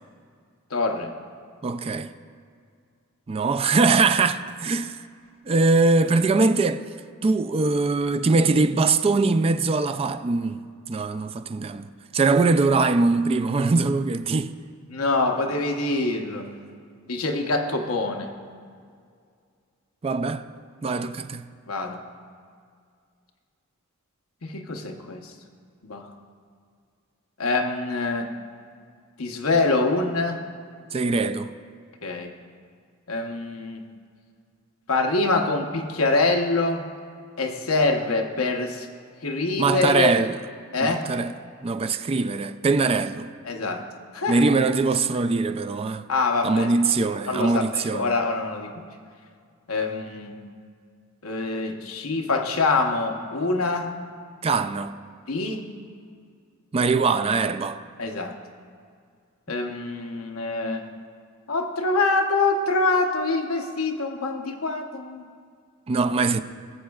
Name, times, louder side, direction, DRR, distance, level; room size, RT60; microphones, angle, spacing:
voice 1, 0.7-1.1 14.9-16.5 17.1-18.3 21.7-22.0 24.4-25.3 25.8-26.1 27.4-28.3 29.2-30.4 32.0-32.3 33.1-33.9 34.9-36.9 37.4-38.9 39.2-40.2 40.7-41.1 43.4-43.9 44.1-44.4 46.1-46.7 47.3-48.7 49.7-50.4 51.2-53.9 55.3-55.6 58.0-58.3 59.5-60.9 61.5-65.2, left 3 dB, 85° left, 0.9 m, -25 dB
voice 2, 1.6-2.1 3.3-5.0 5.5-6.8 7.2-10.6 10.9-11.9 12.1-14.5 20.0-20.4 20.8-21.5 30.9-31.5 39.6-40.4 40.8-41.3 41.6-43.3 44.3-46.0 46.4-48.1 54.4-54.9 56.7-57.8 65.9-66.4, right 3 dB, 30° right, 0.3 m, -22 dB
22.0 x 7.4 x 2.3 m
head